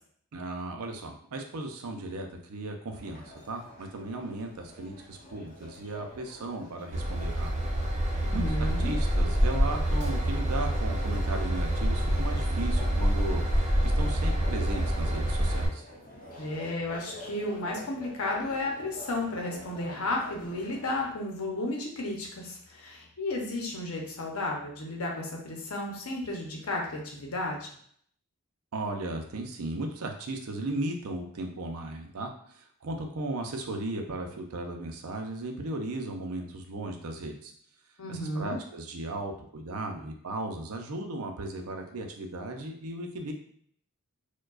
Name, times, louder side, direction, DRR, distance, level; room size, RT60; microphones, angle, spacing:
voice 1, 0.3-7.5 8.3-15.8 28.7-37.5 38.1-43.3, right 2 dB, 80° right, 4 dB, 0.5 m, -36 dB
sound 1, 2.9-21.1, left 1 dB, 40° left, 0.9 m, -48 dB
Train / Engine, 6.9-15.7, equal, 30° right, 0.6 m, -27 dB
voice 2, 8.1-8.9 16.4-27.7 38.0-38.6, left 2 dB, 80° left, -1 dB, 0.8 m, -33 dB
4.5 x 2.2 x 2.4 m, 0.64 s
head